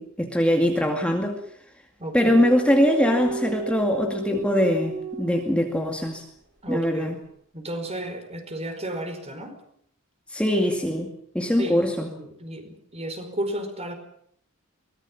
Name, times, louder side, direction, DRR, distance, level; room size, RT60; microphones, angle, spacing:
voice 1, 0.0-1.4 2.1-6.2 6.7-7.2 10.3-12.1, equal, 5° left, 2 dB, 2.3 m, -22 dB
voice 2, 2.0-2.3 6.6-7.2 7.5-9.6 11.6-13.9, right 1 dB, 30° right, 6 dB, 4.8 m, -33 dB
sound 1, 2.2-6.2, right 2 dB, 60° right, 5.6 m, -34 dB
23.5 x 19.0 x 7.3 m, 0.66 s
head